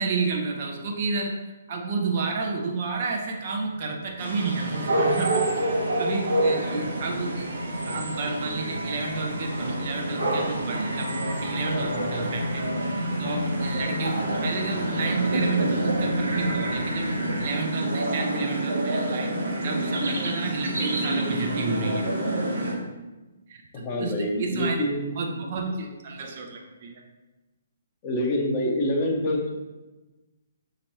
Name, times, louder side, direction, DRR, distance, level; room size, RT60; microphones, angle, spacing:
voice 1, 0.0-1.4 1.7-5.5 6.0-7.5 7.8-11.1 11.4-12.6 12.9-19.3 19.6-22.1 23.5-24.8 25.2-27.0, right 4 dB, 40° right, 1 dB, 0.6 m, -31 dB
sound 1, 3.3-17.5, left 1 dB, 75° left, 0.6 m, -35 dB
sound 2, 4.2-22.7, right 1 dB, 60° right, 1.0 m, -28 dB
voice 2, 23.7-25.1 28.0-29.6, left 1 dB, 30° left, 0 dB, 0.8 m, -26 dB
6.2 x 2.9 x 2.9 m, 1.1 s
figure-of-eight pair, 130°, 0 cm